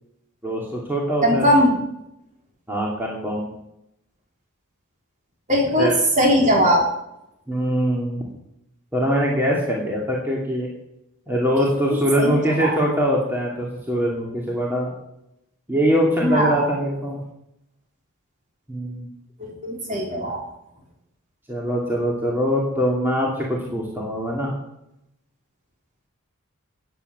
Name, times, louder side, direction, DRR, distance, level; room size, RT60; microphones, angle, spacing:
voice 1, 0.4-1.5 2.7-3.5 5.8-5.9 7.5-8.2 8.9-10.7 11.3-14.9 15.7-17.2 18.7-19.1 21.5-24.5, equal, 10° right, -4 dB, 2.6 m, -23 dB
voice 2, 1.2-1.7 5.5-5.9 6.2-6.8 11.6-12.8 16.2-16.7 19.4-20.4, equal, 35° right, -1 dB, 4.0 m, -20 dB
14.5 x 9.4 x 6.8 m, 0.82 s
head